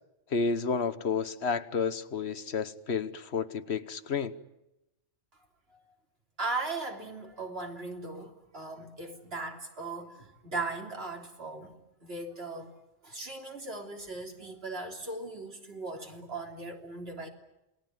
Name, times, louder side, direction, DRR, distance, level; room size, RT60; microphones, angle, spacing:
voice 1, 0.3-4.4, left 5 dB, 70° left, 1.4 m, -31 dB
voice 2, 6.4-11.7 12.0-12.8 13.0-17.3, right 3 dB, 60° right, 3.6 m, -38 dB
28.5 x 20.0 x 9.2 m
omnidirectional pair, 1.2 m